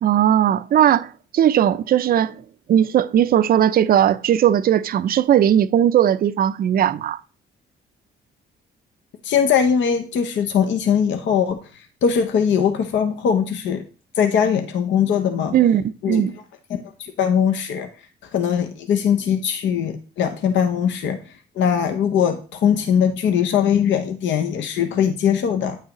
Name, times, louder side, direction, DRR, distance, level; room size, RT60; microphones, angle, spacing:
voice 1, 0.0-2.4 2.7-7.2 15.5-16.3, right 10 dB, 50° right, 0.4 m, -18 dB
voice 2, 9.2-13.8 14.2-15.5 16.0-16.2 16.7-17.9 18.2-25.8, left 7 dB, 65° left, 0.6 m, -21 dB
8.9 x 5.5 x 2.9 m
cardioid pair, 90°, 20 cm